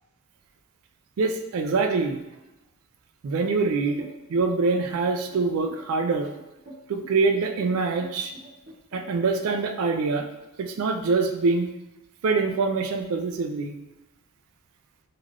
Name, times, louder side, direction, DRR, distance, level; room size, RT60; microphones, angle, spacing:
voice 1, 1.2-2.2 3.2-4.0 4.3-6.3 6.9-8.3 8.9-10.3 10.6-11.7 12.2-13.7, right 4 dB, 70° right, 5 dB, 0.3 m, -24 dB
sound 1, 4.0-9.3, right 1 dB, 45° right, 0.7 m, -46 dB
3.2 x 2.4 x 2.4 m, 0.96 s
head